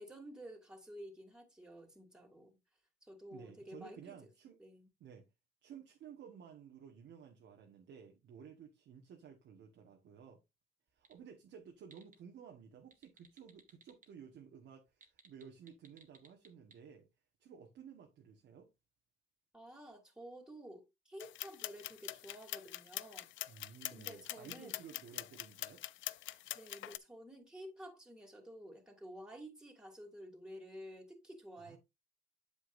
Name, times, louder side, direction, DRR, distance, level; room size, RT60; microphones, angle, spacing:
voice 1, 0.0-2.6 3.0-4.2 4.6-4.9 19.5-23.3 23.9-24.8 26.3-31.8, equal, 5° right, 2.7 m, -52 dB
voice 2, 3.3-4.6 5.0-5.3 5.6-10.4 10.9-17.1 17.4-18.7 23.5-25.8 31.6-31.8, right 7 dB, 70° right, 1.4 m, -55 dB
sound 1, 10.9-11.2 11.6-12.2 12.8-14.1 14.9-16.8, right 5 dB, 40° right, 1.7 m, -61 dB
sound 2, 21.2-27.0, left 15 dB, 75° left, 0.4 m, -44 dB
8.3 x 7.3 x 2.5 m
cardioid pair, 90°, 20 cm